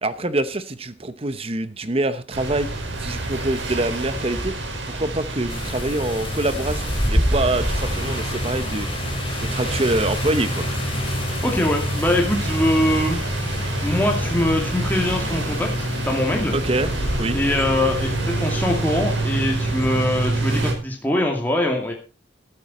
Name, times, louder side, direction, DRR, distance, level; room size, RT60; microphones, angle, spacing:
voice 1, 0.0-10.7 16.5-16.9 17.2-17.4, right 2 dB, 30° right, 12 dB, 0.9 m, -25 dB
sound 1, 2.3-20.7, right 1 dB, 90° right, 5.2 m, -27 dB
sound 2, 5.5-20.1, left 1 dB, 30° left, 2.8 m, -30 dB
voice 2, 11.4-13.2 13.8-16.6 17.3-21.9, left 1 dB, 10° left, 0 dB, 2.5 m, -22 dB
13.5 x 13.5 x 4.2 m, 0.31 s
head